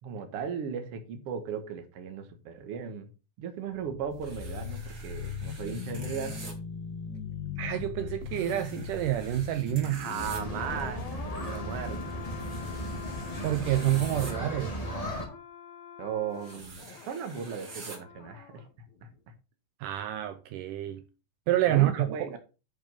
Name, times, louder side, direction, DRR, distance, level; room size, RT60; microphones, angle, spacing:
voice 1, 0.0-3.1 3.4-6.5 9.9-11.0 11.3-12.2 16.0-18.6 19.0-19.1 21.7-22.4, right 7 dB, 55° right, 1.8 m, -36 dB
sound 1, 3.7-18.7 18.9-19.1, left 7 dB, 90° left, 3.7 m, -41 dB
sound 2, 4.2-6.5 8.3-10.4 12.4-14.3 16.3-18.0, right 3 dB, 35° right, 2.1 m, -47 dB
voice 2, 7.6-10.1 13.4-14.8 19.8-21.1 21.5-22.4, right 14 dB, 80° right, 2.0 m, -28 dB
sound 3, 10.2-15.3, equal, 35° left, 0.5 m, -36 dB
9.2 x 5.3 x 5.4 m
omnidirectional pair, 4.1 m